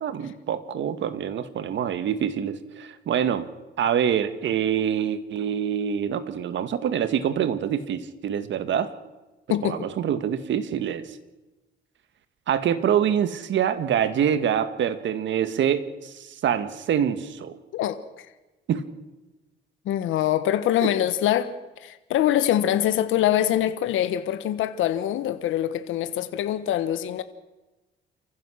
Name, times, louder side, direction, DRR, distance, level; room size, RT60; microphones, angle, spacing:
voice 1, 0.0-3.5 3.8-8.9 9.5-11.1 12.5-17.6 18.7-18.9 20.8-20.9, right 9 dB, 70° right, 1.7 m, -25 dB
voice 2, 9.5-9.9 17.7-18.3 19.9-21.5 21.8-27.2, left 11 dB, 85° left, 1.2 m, -24 dB
28.5 x 15.5 x 6.4 m
cardioid pair, 90°, 20 cm